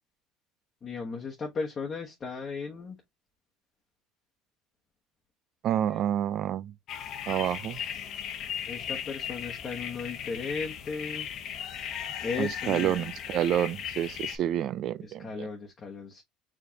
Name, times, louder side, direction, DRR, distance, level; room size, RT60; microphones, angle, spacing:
voice 1, 0.8-3.0 5.9-6.0 8.7-11.3 12.2-13.1 15.0-16.2, left 4 dB, 35° left, 1.1 m, -36 dB
voice 2, 5.6-6.7 7.3-7.8 12.4-15.5, right 11 dB, 55° right, 0.4 m, -29 dB
sound 1, 6.9-14.4, left 8 dB, 55° left, 0.9 m, -37 dB
4.8 x 3.3 x 2.8 m
supercardioid pair, 100°, 0 cm